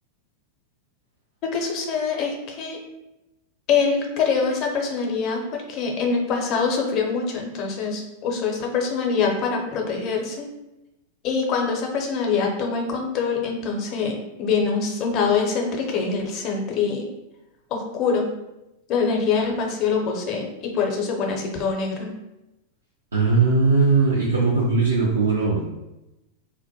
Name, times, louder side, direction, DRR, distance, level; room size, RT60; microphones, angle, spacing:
voice 1, 1.4-2.8 3.7-10.5 11.2-17.1 17.7-18.3 18.9-22.1, left 5 dB, 40° left, 1 dB, 0.5 m, -24 dB
voice 2, 23.1-25.6, right 4 dB, 80° right, -5 dB, 0.4 m, -19 dB
2.1 x 2.1 x 2.8 m, 0.94 s
figure-of-eight pair, 90°, 0 cm